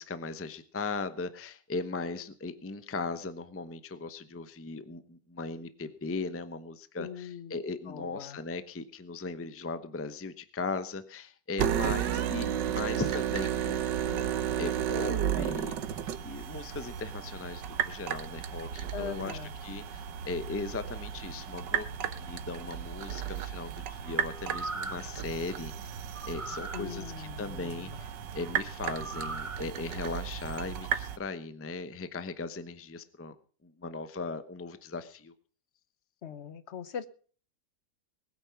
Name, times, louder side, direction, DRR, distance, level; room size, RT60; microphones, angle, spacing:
voice 1, 0.0-15.7 16.2-25.7 26.3-33.4 33.6-35.3, left 3 dB, 15° left, 11 dB, 0.5 m, -38 dB
voice 2, 7.0-7.5 7.9-8.4 18.9-19.5 26.7-28.0 36.2-37.1, left 7 dB, 45° left, 13 dB, 1.0 m, -41 dB
sound 1, 11.6-31.2, right 9 dB, 80° right, 1.6 m, -34 dB
sound 2, 24.3-25.1 26.1-26.8 28.9-29.6 30.1-30.2, right 3 dB, 20° right, 1.1 m, -39 dB
20.0 x 9.0 x 5.9 m, 0.43 s
omnidirectional pair, 1.9 m